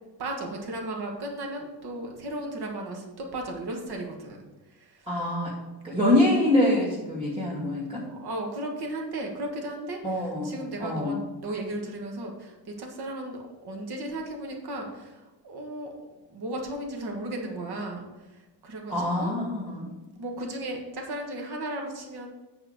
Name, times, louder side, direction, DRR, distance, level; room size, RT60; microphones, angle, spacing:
voice 1, 0.2-4.4 5.8-6.1 8.1-15.9 16.3-18.1 18.6-19.3 20.2-22.3, right 1 dB, 65° right, 1 dB, 1.7 m, -35 dB
voice 2, 5.1-5.5 5.8-8.0 10.0-11.2 18.9-19.9, left 1 dB, 10° right, -8 dB, 2.3 m, -25 dB
8.7 x 4.4 x 6.5 m, 1.1 s
wide cardioid pair, 160°, 42 cm